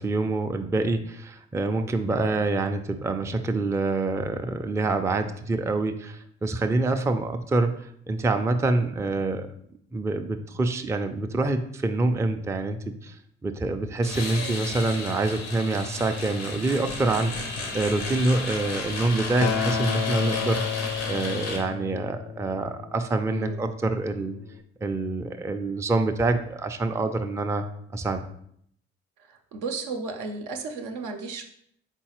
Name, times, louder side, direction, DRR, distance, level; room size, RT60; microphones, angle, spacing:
voice 1, 0.0-7.7 8.1-9.5 9.9-13.1 13.4-24.4 24.8-27.6 27.9-28.2, right 2 dB, 10° right, 7 dB, 0.4 m, -26 dB
sound 1, 14.0-21.6, left 3 dB, 90° left, 0.7 m, -33 dB
Acoustic guitar, 19.4-23.7 24.5-24.6, left 8 dB, 55° left, 0.5 m, -31 dB
voice 2, 29.3-31.4, right 3 dB, 75° right, 4 dB, 0.6 m, -33 dB
4.0 x 3.7 x 2.9 m, 0.68 s
hypercardioid pair, 40°, 32 cm